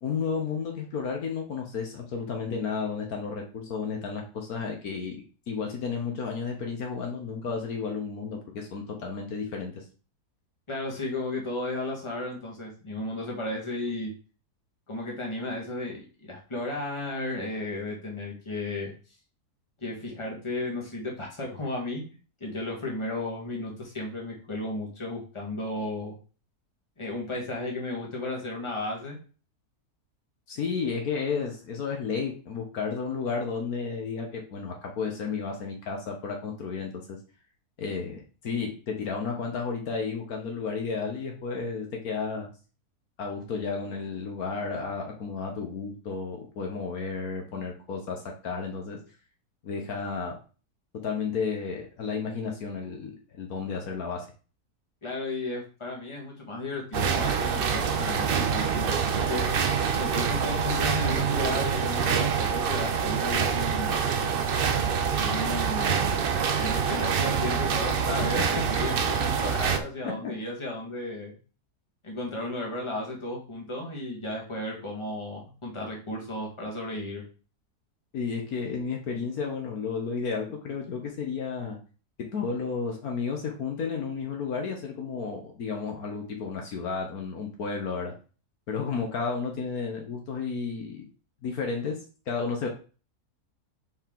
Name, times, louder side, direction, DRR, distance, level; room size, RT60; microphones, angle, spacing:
voice 1, 0.0-9.8 30.5-37.2 37.8-42.5 43.2-49.0 49.6-50.4 51.0-54.3 70.0-70.3 78.1-81.8 82.2-88.1 88.7-91.1 91.4-92.0 92.3-92.7, left 5 dB, 70° left, 1 dB, 1.5 m, -32 dB
voice 2, 10.7-14.1 14.9-18.9 19.8-22.0 22.4-26.2 27.0-29.2 55.0-59.5 60.0-64.0 65.1-66.2 66.6-71.4 72.0-77.2, left 2 dB, 20° left, -2 dB, 1.7 m, -34 dB
sound 1, 56.9-69.8, right 6 dB, 60° right, 0.5 m, -26 dB
5.3 x 4.6 x 3.8 m, 0.36 s
omnidirectional pair, 1.7 m